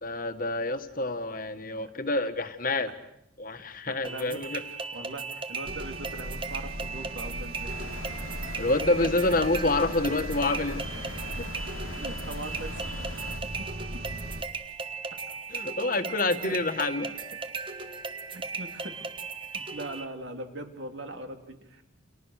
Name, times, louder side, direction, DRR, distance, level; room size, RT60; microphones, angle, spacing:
voice 1, 0.0-2.9 3.4-4.6 8.6-11.5 15.5-17.1, left 2 dB, 45° left, 8 dB, 1.8 m, -28 dB
voice 2, 3.9-8.0 9.0-9.1 11.9-12.9 13.4-14.1 16.0-16.1 16.4-16.6 18.3-19.1 19.5-21.8, right 2 dB, 65° right, 5 dB, 3.5 m, -41 dB
sound 1, 4.0-20.0, right 4 dB, 25° right, 1.4 m, -37 dB
sound 2, 5.6-14.4, right 1 dB, 50° right, 2.3 m, -39 dB
sound 3, 7.7-13.4, left 2 dB, 85° left, 2.2 m, -41 dB
30.0 x 29.5 x 6.7 m, 0.80 s
head